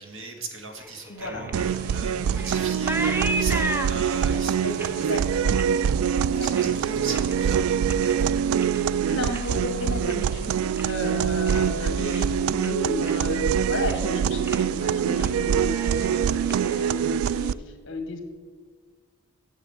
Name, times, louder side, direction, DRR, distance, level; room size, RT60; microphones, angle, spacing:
voice 1, 0.0-8.3, right 3 dB, 65° right, 4 dB, 1.7 m, -39 dB
sound 1, 0.8-7.5 7.8-8.3 8.6-11.0 11.3-11.8 12.1-12.2 12.6-13.4 13.7-14.1 14.5-14.7 15.0-15.4 15.6-17.5, right 1 dB, 10° right, 0.7 m, -36 dB
voice 2, 1.1-1.4 4.6-5.6 6.2-6.8 9.1-18.2, left 1 dB, 60° left, 5 dB, 1.7 m, -33 dB
sound 2, 1.2-14.4, right 1 dB, 50° right, 2.2 m, -43 dB
sound 3, 1.5-17.5, right 8 dB, 80° right, 0.3 m, -24 dB
9.1 x 7.2 x 7.4 m, 1.5 s
head